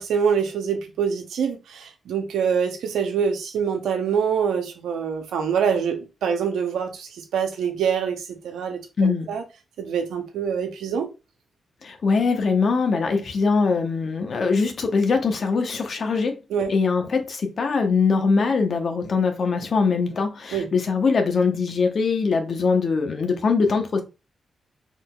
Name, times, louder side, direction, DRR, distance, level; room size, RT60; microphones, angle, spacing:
voice 1, 0.0-9.4 9.8-11.1 16.5-16.7 20.5-20.7, right 7 dB, 85° right, 1.0 m, -25 dB
voice 2, 9.0-9.3 11.8-16.4 16.7-24.0, left 4 dB, 60° left, 1.1 m, -22 dB
4.4 x 3.7 x 2.5 m
supercardioid pair, 50°, 0 cm